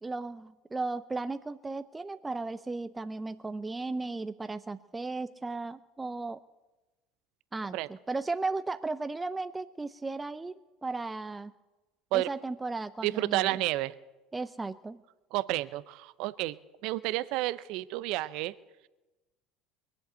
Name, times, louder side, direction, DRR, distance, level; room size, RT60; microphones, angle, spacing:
voice 1, 0.0-6.4 7.5-11.5 12.1-13.6 14.3-15.0, right 3 dB, 15° right, 11 dB, 0.6 m, -35 dB
voice 2, 13.0-13.9 15.3-16.6 16.8-18.5, right 17 dB, 65° right, 18 dB, 0.6 m, -30 dB
22.0 x 7.8 x 8.0 m, 1.1 s
hypercardioid pair, 70°, 0 cm